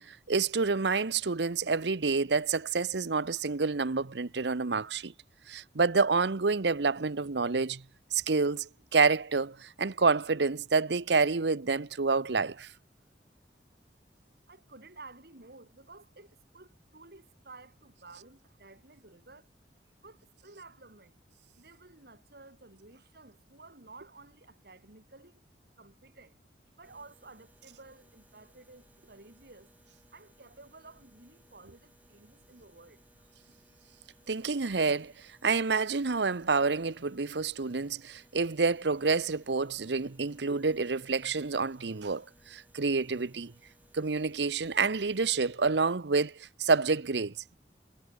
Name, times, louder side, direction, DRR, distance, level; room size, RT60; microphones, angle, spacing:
voice 1, 0.0-5.1 5.5-7.8 8.1-12.7 34.3-35.1 35.4-43.5 43.9-47.6, right 4 dB, 75° right, 0.9 m, -28 dB
voice 2, 14.5-19.5 20.0-21.2 21.6-25.4 25.8-26.4 26.8-29.7 30.1-33.0, right 3 dB, 60° right, 2.9 m, -53 dB
sound 1, 26.8-45.3, right 1 dB, 10° right, 5.1 m, -65 dB
head